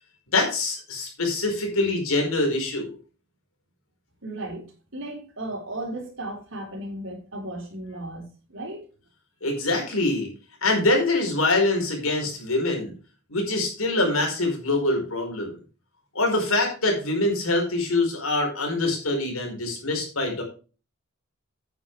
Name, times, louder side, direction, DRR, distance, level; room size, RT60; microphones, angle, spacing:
voice 1, 0.3-2.9 9.4-10.3 10.6-12.9 13.3-15.6 16.1-20.4, left 2 dB, 85° left, 4.8 m, -24 dB
voice 2, 4.2-4.7 4.9-8.8, right 1 dB, 60° right, 4.1 m, -35 dB
9.9 x 9.0 x 3.4 m
head